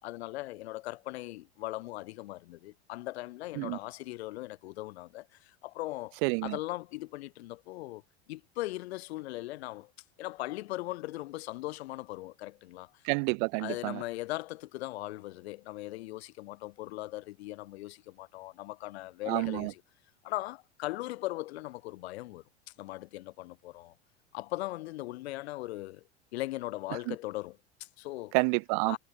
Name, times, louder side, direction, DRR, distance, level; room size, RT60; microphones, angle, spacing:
voice 1, 0.0-8.0 8.3-9.9 10.2-13.0 13.6-19.8 20.2-23.9 24.3-26.0 26.3-28.4 28.8-29.0, left 18 dB, 65° left, 6.2 m, -39 dB
voice 2, 6.2-6.6 13.0-14.0 19.3-19.7 27.1-27.2 28.3-29.0, right 38 dB, 50° right, 0.5 m, -29 dB
hypercardioid pair, 90°, 34 cm